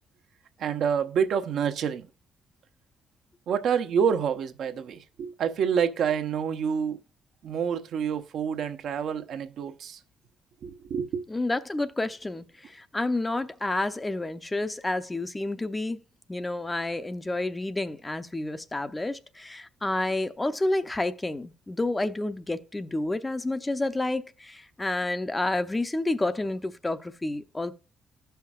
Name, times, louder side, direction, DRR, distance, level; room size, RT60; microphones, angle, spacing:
voice 1, 0.6-2.1 3.5-7.0 7.4-10.0 10.6-11.2, right 7 dB, 70° right, 0.8 m, -27 dB
voice 2, 11.3-16.0 16.3-27.7, left 2 dB, 15° left, 0.6 m, -29 dB
15.5 x 5.7 x 2.3 m
cardioid pair, 100°, 0 cm